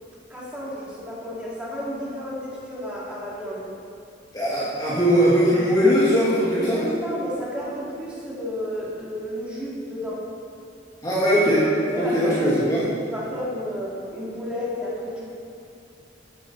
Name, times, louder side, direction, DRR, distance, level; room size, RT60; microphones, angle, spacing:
voice 1, 0.3-3.7 6.8-10.2 11.9-15.3, equal, 5° right, -8 dB, 3.0 m, -32 dB
voice 2, 4.3-6.8 11.0-11.7 11.9-12.8, equal, 20° left, -9 dB, 1.9 m, -20 dB
13.0 x 10.5 x 4.2 m, 2.5 s
head